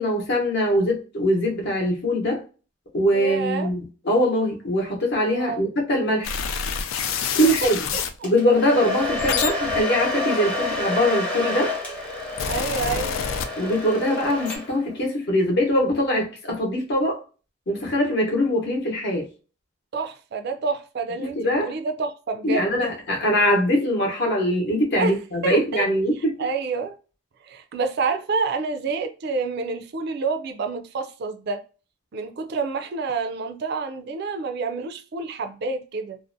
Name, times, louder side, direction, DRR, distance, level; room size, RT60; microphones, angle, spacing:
voice 1, 0.0-2.4 2.9-6.3 7.3-7.8 8.2-11.7 13.6-17.2 17.7-19.3 21.2-21.7 22.4-26.3, equal, 55° left, 0.8 m, -22 dB
voice 2, 3.1-3.7 5.3-5.6 7.6-8.0 10.5-10.7 12.5-13.2 19.9-22.9 25.0-25.2 25.4-25.9 26.4-27.0 27.4-31.6 32.1-36.2, right 4 dB, 50° right, 0.3 m, -28 dB
sound 1, 6.2-8.2 8.9-11.2 12.0-14.0 14.2-14.6, left 7 dB, 75° left, 0.3 m, -28 dB
Domestic sounds home sounds, 8.2-14.9, left 2 dB, 5° left, 0.5 m, -29 dB
2.5 x 2.0 x 2.5 m
head